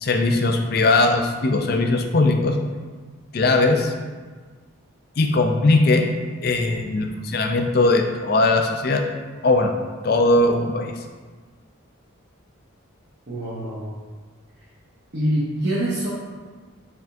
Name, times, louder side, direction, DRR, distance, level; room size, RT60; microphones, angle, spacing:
voice 1, 0.0-2.6 3.3-3.9 5.2-6.1 6.4-9.0 9.4-9.7 10.0-10.9, left 2 dB, 45° left, 4 dB, 0.4 m, -19 dB
voice 2, 13.3-13.9 15.1-16.1, right 1 dB, 55° right, -9 dB, 0.9 m, -25 dB
4.7 x 3.6 x 2.6 m, 1.5 s
head